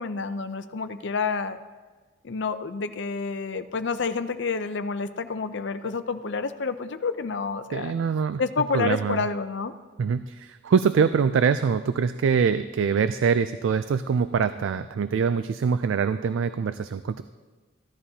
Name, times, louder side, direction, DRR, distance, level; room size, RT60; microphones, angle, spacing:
voice 1, 0.0-1.6 2.2-7.9 8.4-9.7, left 4 dB, 60° left, 10 dB, 0.5 m, -29 dB
voice 2, 7.7-8.4 8.7-9.3 10.0-17.2, right 6 dB, 70° right, 12 dB, 0.3 m, -24 dB
15.5 x 11.0 x 2.8 m, 1.4 s
head